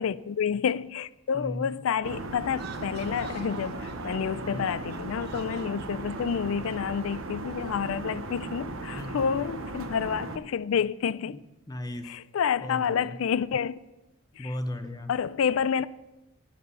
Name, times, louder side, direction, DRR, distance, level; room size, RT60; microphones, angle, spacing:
voice 1, 0.0-11.4 12.0-13.8 14.4-14.5 15.1-15.9, left 7 dB, 80° left, 0.4 m, -29 dB
voice 2, 1.3-1.7 4.4-4.7 9.0-9.3 11.2-11.4 11.7-12.1 12.6-13.2 14.4-15.2, left 1 dB, 20° left, 0.7 m, -36 dB
sound 1, 2.0-10.4, right 2 dB, 80° right, 0.9 m, -37 dB
sound 2, 2.5-7.9, right 5 dB, 50° right, 0.8 m, -46 dB
10.0 x 8.8 x 5.5 m
head